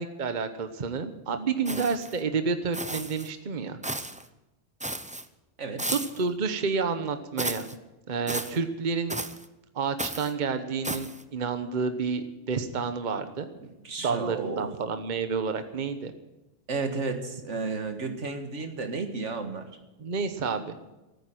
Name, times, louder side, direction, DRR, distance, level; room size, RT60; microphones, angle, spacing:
voice 1, 0.0-3.8 5.9-7.6 8.1-9.1 9.7-13.5 14.0-16.1 20.0-20.7, right 5 dB, 40° right, 9 dB, 1.1 m, -29 dB
sound 1, 1.6-2.2 2.7-3.3 3.8-4.2 4.8-5.2 5.8-6.2 7.4-7.7 8.3-8.6 9.1-9.5 10.0-10.3 10.8-11.2, right 1 dB, 10° right, 0.4 m, -34 dB
voice 2, 13.6-14.7 16.7-19.7, right 4 dB, 75° right, 7 dB, 1.9 m, -33 dB
14.5 x 9.3 x 9.2 m, 1.0 s
omnidirectional pair, 1.2 m